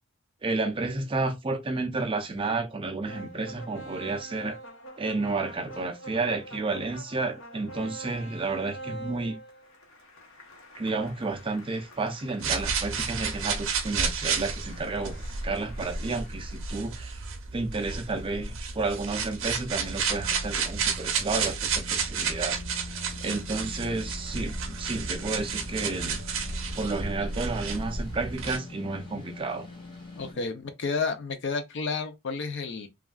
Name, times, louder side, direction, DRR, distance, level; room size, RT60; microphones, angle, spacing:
voice 1, 0.4-4.6 5.0-9.4 10.8-17.2 17.5-22.6 23.2-26.2 26.8-29.7, right 3 dB, 25° right, 0.4 m, -31 dB
sound 1, 3.0-17.2, right 1 dB, 80° left, 1.0 m, -46 dB
sound 2, 12.4-28.6, right 5 dB, 65° right, 0.6 m, -31 dB
sound 3, 19.6-30.3, left 3 dB, 20° left, 0.9 m, -45 dB
voice 2, 30.2-32.9, left 4 dB, 60° left, 0.5 m, -31 dB
3.1 x 2.4 x 2.2 m
head